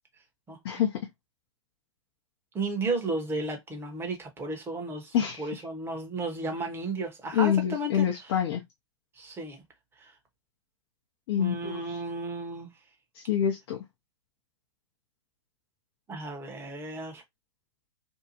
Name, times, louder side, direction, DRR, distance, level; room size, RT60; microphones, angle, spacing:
voice 1, 0.6-1.0 5.1-5.5 7.3-8.6 11.3-12.0 13.1-13.8, left 9 dB, 55° left, 0.7 m, -26 dB
voice 2, 2.5-8.1 9.2-9.6 10.0-10.1 11.4-12.7 16.1-17.2, right 2 dB, 15° right, 0.9 m, -33 dB
2.7 x 2.2 x 2.7 m
hypercardioid pair, 115°, 16 cm